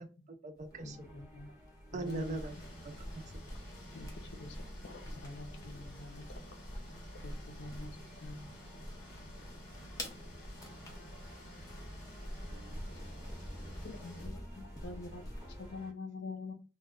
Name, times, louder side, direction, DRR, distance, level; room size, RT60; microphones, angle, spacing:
voice 1, 0.0-1.0 1.9-3.1 3.3-3.4, right 2 dB, 35° right, 7 dB, 0.3 m, -40 dB
sound 1, 0.6-15.7, equal, 20° left, 0.5 m, -48 dB
sound 2, 0.7-15.9, equal, 10° right, 0.9 m, -53 dB
voice 2, 0.8-1.5 1.9-2.4 3.9-4.1 4.4-4.6 4.8-6.2 7.2-7.9 8.2-8.4 13.8-15.2 15.6-16.5, left 3 dB, 65° left, 6 dB, 0.5 m, -45 dB
sound 3, 2.0-14.3, left 1 dB, 40° left, 1.0 m, -53 dB
voice 3, 9.3-9.6 10.2-10.3 12.0-14.3, right 2 dB, 75° right, 1 dB, 0.9 m, -60 dB
2.1 x 2.1 x 3.5 m, 0.33 s
head